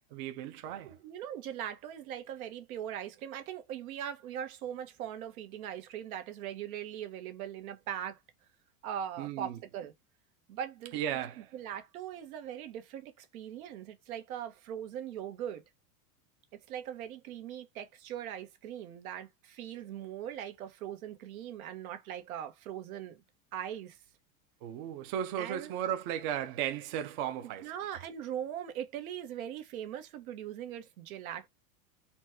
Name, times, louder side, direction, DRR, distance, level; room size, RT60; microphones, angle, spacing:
voice 1, 0.1-0.9 9.2-9.5 10.9-11.5 24.6-27.7, right 10 dB, 40° right, 0.5 m, -35 dB
voice 2, 0.8-8.2 8.8-9.9 10.5-11.0 11.4-15.6 16.7-23.2 23.5-24.0 25.4-25.7 27.4-31.5, right 10 dB, 85° right, 1.3 m, -40 dB
4.2 x 2.3 x 4.4 m
supercardioid pair, 170°, 41 cm